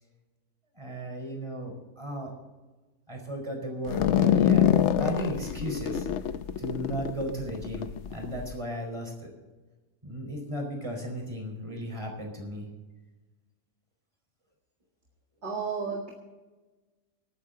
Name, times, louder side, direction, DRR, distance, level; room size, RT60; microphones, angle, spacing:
voice 1, 0.7-2.3 3.1-6.1 6.6-9.3 10.0-12.7, equal, 20° right, 1 dB, 4.6 m, -35 dB
sound 1, 3.9-8.5, left 9 dB, 60° left, 0.8 m, -25 dB
voice 2, 15.4-16.1, right 5 dB, 45° right, 0 dB, 2.2 m, -32 dB
26.5 x 9.4 x 3.9 m, 1.2 s
omnidirectional pair, 1.6 m